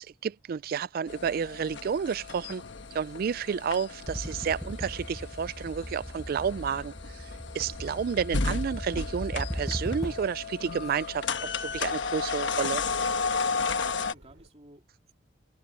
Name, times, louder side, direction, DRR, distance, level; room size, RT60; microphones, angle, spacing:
voice 1, 0.0-2.6 2.9-7.3 7.5-12.8, right 7 dB, 50° right, 0.3 m, -31 dB
sound 1, 1.1-14.1, left 4 dB, 70° left, 1.3 m, -34 dB
sound 2, 1.7-14.5, right 1 dB, 75° right, 3.0 m, -57 dB
sound 3, 4.1-10.4, equal, ahead, 0.6 m, -38 dB
voice 2, 13.5-15.1, right 2 dB, 35° right, 2.8 m, -55 dB
head